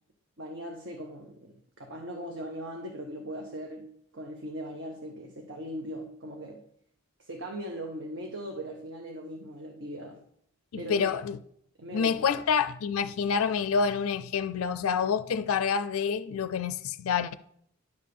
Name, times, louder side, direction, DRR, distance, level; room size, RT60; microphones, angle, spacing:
voice 1, 0.4-3.9 4.1-6.6 7.2-10.2 10.8-11.1 11.8-12.4, equal, 55° right, 1.0 m, -39 dB
voice 2, 10.7-11.4 11.9-17.3, left 6 dB, 85° left, 0.4 m, -27 dB
10.5 x 3.6 x 6.7 m
head